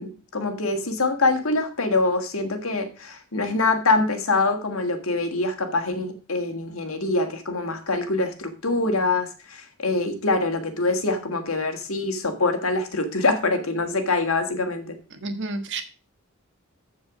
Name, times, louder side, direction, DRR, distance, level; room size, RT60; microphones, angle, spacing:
voice 1, 0.0-15.0, left 3 dB, 75° left, 6 dB, 1.8 m, -24 dB
voice 2, 15.2-15.8, right 3 dB, 60° right, 8 dB, 1.5 m, -30 dB
14.0 x 4.8 x 5.0 m, 0.36 s
head